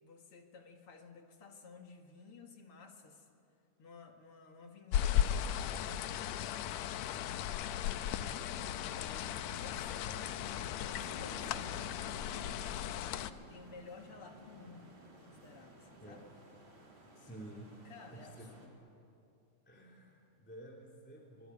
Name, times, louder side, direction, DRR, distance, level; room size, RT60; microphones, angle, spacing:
voice 1, 0.0-3.3 3.8-6.4 7.0-7.2 7.7-13.2 13.5-16.3 17.8-18.8, left 4 dB, 50° left, 4 dB, 2.5 m, -55 dB
sound 1, 4.9-13.3, left 10 dB, 75° left, 1.9 m, -36 dB
sound 2, 8.4-18.7, right 2 dB, 65° right, 5.9 m, -55 dB
voice 2, 16.0-16.4 17.1-17.7 18.1-18.5 19.7-21.5, right 1 dB, 5° left, -1 dB, 2.5 m, -51 dB
24.5 x 20.5 x 9.7 m, 2.7 s
omnidirectional pair, 3.4 m